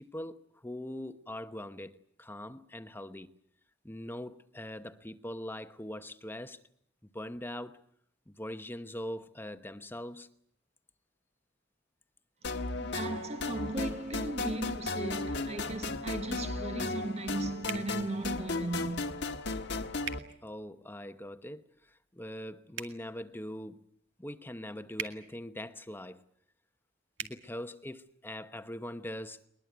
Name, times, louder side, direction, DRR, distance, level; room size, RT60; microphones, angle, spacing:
voice 1, 0.0-3.3 3.8-6.6 7.1-7.8 8.3-10.3 20.4-23.8 24.2-26.2 27.2-29.5, left 1 dB, 10° left, 1.0 m, -42 dB
sound 1, 12.4-20.2, left 3 dB, 60° left, 1.5 m, -35 dB
voice 2, 12.5-19.3, right 2 dB, 35° right, 1.1 m, -37 dB
sound 2, 17.7-17.9 20.0-20.2 22.7-23.0 24.9-25.2 27.1-27.3, right 7 dB, 75° right, 2.2 m, -38 dB
21.5 x 21.5 x 9.4 m
head